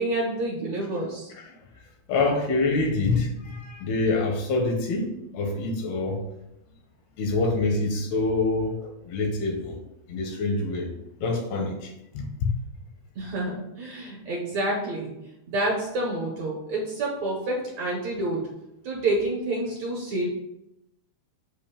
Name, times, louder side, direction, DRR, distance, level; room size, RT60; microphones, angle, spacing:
voice 1, 0.0-1.3 13.2-15.1 15.5-18.4 18.8-20.3, right 2 dB, 65° right, -3 dB, 1.8 m, -28 dB
voice 2, 2.1-6.3 7.2-9.8 10.1-12.5, left 3 dB, 80° left, 2 dB, 3.1 m, -26 dB
7.9 x 2.7 x 5.1 m, 0.88 s
omnidirectional pair, 4.5 m